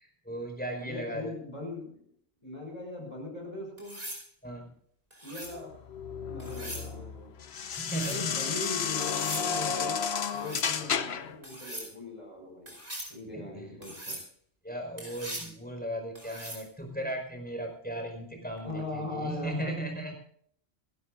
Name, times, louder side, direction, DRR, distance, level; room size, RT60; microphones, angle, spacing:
voice 1, 0.0-1.3 4.4-4.7 7.7-8.4 13.3-13.7 14.6-20.1, right 1 dB, 10° left, 2 dB, 4.9 m, -37 dB
voice 2, 0.7-2.1 2.4-4.0 5.2-5.7 6.3-7.3 8.0-10.0 10.4-12.7 13.1-14.1 18.6-19.8, left 2 dB, 30° left, 0 dB, 6.0 m, -39 dB
sound 1, 3.8-4.2 5.1-5.6 6.4-6.9 7.7-8.2 9.0-9.5 10.2-10.7 11.4-11.9 12.7-13.1 13.8-14.2 15.0-15.5 16.1-16.6 18.6-18.8, right 1 dB, 50° right, 5.3 m, -41 dB
sound 2, 5.5-11.4, left 7 dB, 70° left, 1.1 m, -32 dB
28.5 x 12.5 x 2.6 m, 0.63 s
omnidirectional pair, 1.1 m